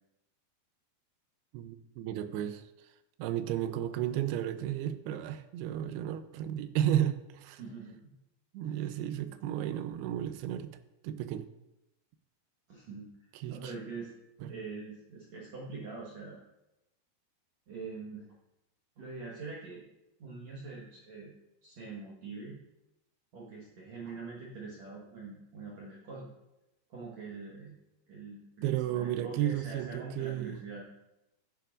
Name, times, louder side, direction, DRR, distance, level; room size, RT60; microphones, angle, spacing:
voice 1, 1.5-2.7 3.2-7.6 8.5-10.7 11.0-11.5 13.4-13.7 14.4-14.6 28.6-30.6, right 11 dB, 90° right, 10 dB, 2.7 m, -33 dB
voice 2, 7.6-8.1 8.6-9.6 12.7-14.1 14.5-16.4 17.7-18.3 19.0-19.8 20.2-21.3 21.6-22.6 23.3-26.3 26.9-27.8 28.1-30.9, right 4 dB, 55° right, -4 dB, 2.1 m, -44 dB
13.5 x 10.0 x 2.5 m, 0.91 s
omnidirectional pair, 4.5 m